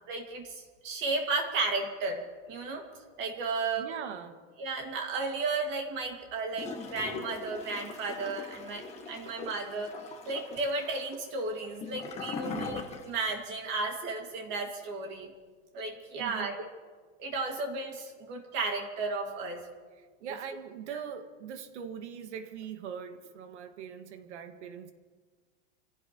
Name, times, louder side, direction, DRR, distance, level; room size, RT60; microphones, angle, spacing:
voice 1, 0.1-2.8 3.2-3.9 4.6-9.9 10.3-15.3 15.7-16.6 17.2-19.6, right 3 dB, 35° right, 2 dB, 2.1 m, -34 dB
voice 2, 3.8-4.4 12.4-12.8 16.2-16.5 20.0-24.9, right 8 dB, 85° right, 7 dB, 1.9 m, -41 dB
Gurgling / Toilet flush, 6.5-13.4 13.7-13.8, left 4 dB, 20° left, 1.4 m, -41 dB
27.5 x 16.5 x 3.1 m, 1.5 s
supercardioid pair, 165°, 34 cm